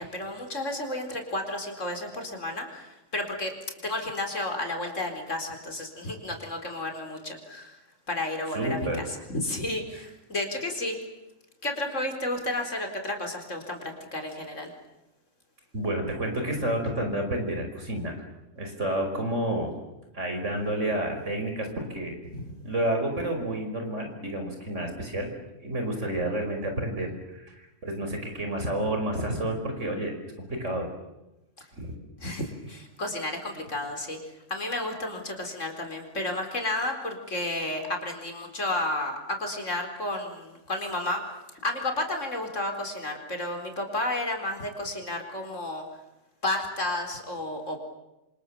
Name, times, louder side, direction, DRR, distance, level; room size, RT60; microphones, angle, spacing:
voice 1, 0.0-3.5 3.8-7.8 8.1-11.0 11.6-14.7 22.4-22.5 31.6-31.7 32.2-34.2 34.5-41.2 41.6-45.8 46.4-47.8, left 1 dB, 80° left, 4 dB, 4.7 m, -32 dB
voice 2, 8.5-9.1 15.7-18.2 18.6-19.7 20.1-22.2 22.6-25.3 25.6-30.9 31.7-32.0, right 1 dB, 75° right, 4 dB, 5.5 m, -30 dB
27.5 x 26.5 x 7.4 m, 0.95 s
omnidirectional pair, 1.3 m